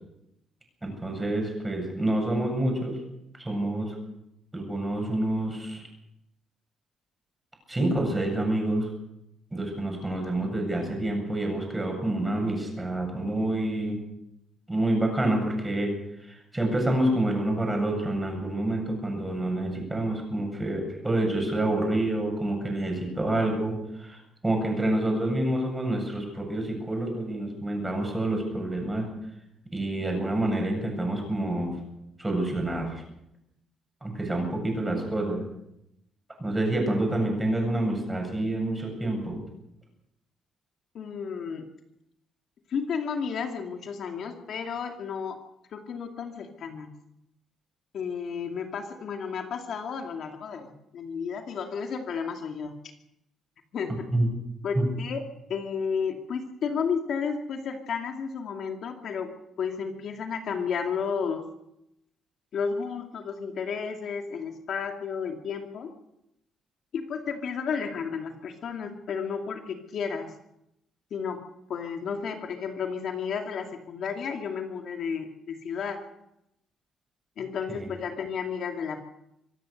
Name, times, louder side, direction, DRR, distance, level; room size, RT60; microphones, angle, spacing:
voice 1, 0.8-3.0 3.4-3.9 4.5-5.8 7.7-8.9 9.5-14.0 14.7-15.9 16.2-29.1 29.7-31.8 32.2-33.0 34.0-35.4 36.4-39.4 54.1-54.3 54.7-54.9 77.7-77.9, right 1 dB, 10° right, 3 dB, 7.7 m, -27 dB
voice 2, 40.9-41.6 42.7-45.4 45.7-46.9 47.9-52.7 53.7-54.0 54.6-55.2 55.5-59.3 59.6-61.5 62.5-65.9 66.9-70.3 71.1-71.4 71.7-76.0 77.4-79.0, left 6 dB, 60° left, 3 dB, 2.5 m, -32 dB
25.0 x 16.5 x 6.6 m, 0.82 s
cardioid pair, 140°, 0 cm